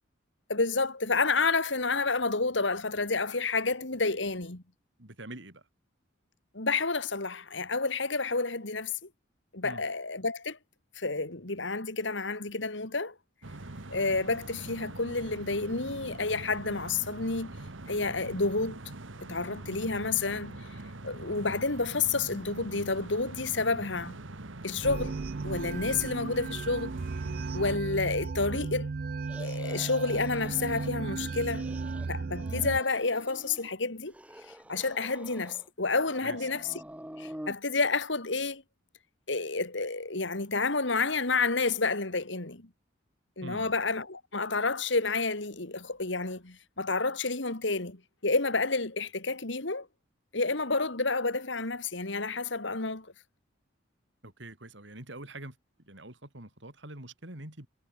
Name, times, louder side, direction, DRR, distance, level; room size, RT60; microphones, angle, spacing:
voice 1, 0.5-4.6 6.5-9.1 9.5-10.6 11.0-13.1 13.9-17.5 17.9-18.8 19.3-20.6 21.0-24.2 24.6-25.2 25.4-27.0 27.5-28.9 29.4-31.6 32.1-34.1 34.7-36.7 37.2-38.6 39.3-42.7 43.4-49.9 50.3-53.1, left 3 dB, 75° left, 2.6 m, -30 dB
voice 2, 5.0-5.7 9.6-9.8 36.2-36.5 43.4-43.8 54.2-57.7, right 1 dB, 70° right, 5.0 m, -45 dB
sound 1, 13.4-27.8, right 2 dB, 85° right, 1.7 m, -43 dB
sound 2, 24.8-32.8, right 4 dB, 50° right, 0.4 m, -35 dB
sound 3, 29.2-30.9 31.2-32.1 32.3-33.7 34.1-35.7 36.0-37.6, equal, 5° right, 1.8 m, -47 dB
head